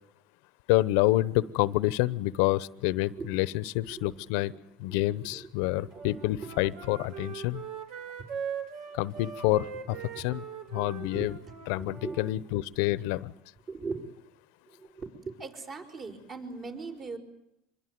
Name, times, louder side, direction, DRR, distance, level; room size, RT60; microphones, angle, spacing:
voice 1, 0.7-4.5 4.8-7.6 8.9-10.4 10.7-11.3 11.7-13.3, left 17 dB, 75° left, 18 dB, 0.9 m, -28 dB
voice 2, 4.9-5.5 5.8-6.7 9.9-10.2 11.0-11.3 11.8-12.4 13.7-14.1 14.7-17.2, right 4 dB, 35° right, 6 dB, 5.7 m, -41 dB
Wind instrument woodwind instrument, 5.9-12.3, right 7 dB, 65° right, 4.5 m, -41 dB
25.5 x 22.0 x 9.5 m, 0.81 s
supercardioid pair, 125°, 0 cm